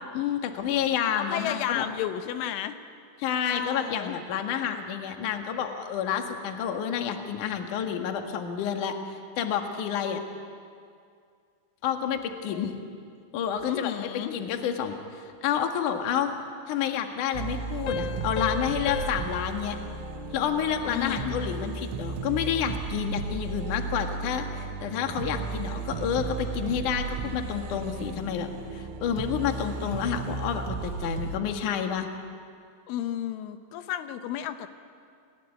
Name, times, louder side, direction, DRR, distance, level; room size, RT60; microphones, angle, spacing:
voice 1, 0.1-1.9 3.2-10.2 11.8-12.7 13.3-16.3 16.7-19.8 20.3-32.1, left 8 dB, 55° left, 4 dB, 2.6 m, -29 dB
voice 2, 1.2-2.8 3.5-4.2 12.5-12.8 13.6-14.4 20.9-21.4 32.9-34.7, left 11 dB, 90° left, 9 dB, 3.5 m, -32 dB
sound 1, 17.3-31.4, right 4 dB, 85° right, 3.8 m, -34 dB
Piano, 17.9-21.2, left 7 dB, 75° left, 2.7 m, -36 dB
29.5 x 20.5 x 9.3 m, 2.3 s
omnidirectional pair, 5.4 m